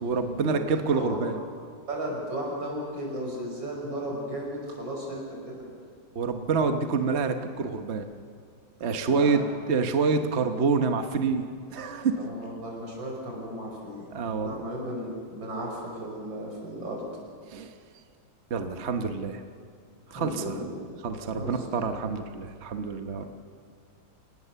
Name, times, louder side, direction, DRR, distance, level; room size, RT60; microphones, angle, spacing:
voice 1, 0.0-1.4 6.1-8.1 8.8-9.4 9.7-12.2 14.1-14.7 17.5-17.7 18.5-19.4 20.1-20.6 21.0-23.2, right 4 dB, 45° right, 6 dB, 1.0 m, -27 dB
voice 2, 0.9-1.4 1.9-5.6 9.1-9.4 12.2-14.0 14.3-17.0 20.1-20.9 21.3-21.5 23.2-23.3, right 1 dB, 70° right, -1 dB, 6.5 m, -35 dB
29.0 x 18.0 x 6.9 m, 2.2 s
omnidirectional pair, 2.2 m